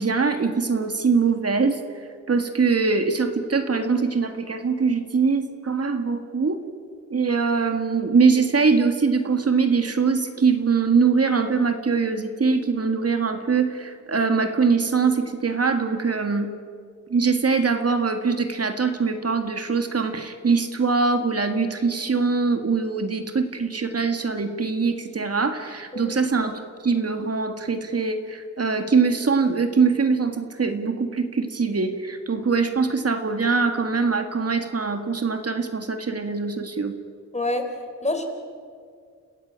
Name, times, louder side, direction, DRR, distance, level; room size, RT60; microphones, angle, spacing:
voice 1, 0.0-1.8 2.3-6.6 7.1-16.5 17.1-26.5 26.8-37.0, right 5 dB, 55° right, 7 dB, 1.8 m, -22 dB
voice 2, 25.9-26.2 37.3-37.6 38.0-38.2, left 2 dB, 25° left, 5 dB, 3.7 m, -26 dB
30.0 x 15.5 x 8.8 m, 2.1 s
wide cardioid pair, 80°, 29 cm